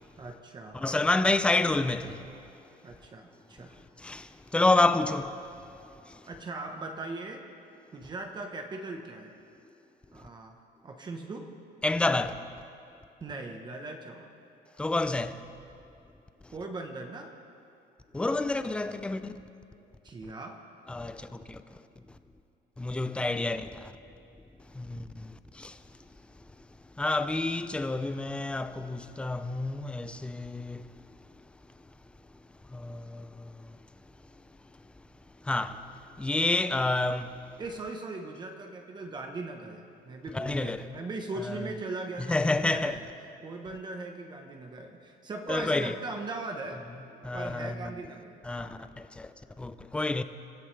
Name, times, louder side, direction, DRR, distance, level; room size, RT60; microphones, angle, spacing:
voice 1, 0.2-0.8 2.8-3.8 4.9-5.2 6.2-7.4 7.9-9.3 10.1-11.5 13.2-14.3 16.5-17.3 20.0-20.6 37.6-43.0 43.4-46.8 47.3-48.8, right 3 dB, 25° right, 1.0 m, -39 dB
voice 2, 0.7-2.3 4.0-5.3 6.1-6.2 11.8-12.5 14.8-15.5 18.1-19.4 20.9-21.6 22.8-23.9 24.7-25.8 27.0-30.9 32.7-33.7 35.4-35.9 36.2-37.4 40.3-40.9 41.5-41.7 42.3-42.9 45.5-45.9 47.2-47.9 48.4-50.2, left 2 dB, 5° left, 0.4 m, -29 dB
28.0 x 14.5 x 3.3 m
cardioid pair, 160°, 18 cm